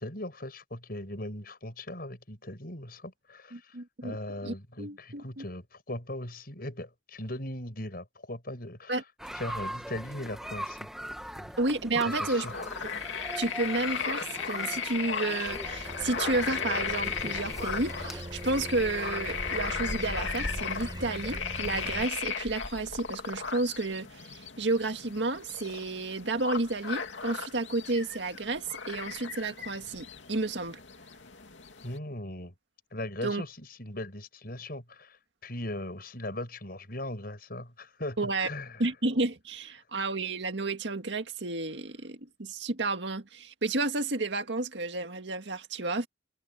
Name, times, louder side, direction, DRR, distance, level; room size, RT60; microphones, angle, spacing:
voice 1, 0.0-3.8 4.0-9.0 9.3-10.9 11.3-11.5 12.0-12.5 31.8-32.5 32.9-38.8, left 1 dB, 55° left, 7.3 m, -39 dB
voice 2, 3.5-4.2 4.4-5.4 8.9-9.0 11.6-12.5 13.4-30.8 33.2-33.4 38.2-38.5 38.8-46.1, right 2 dB, 70° right, 1.9 m, -31 dB
sound 1, 9.2-18.2, equal, ahead, 1.1 m, -41 dB
sound 2, 12.1-32.0, left 5 dB, 85° left, 2.7 m, -36 dB
sound 3, 15.4-22.1, equal, 25° right, 4.9 m, -41 dB
head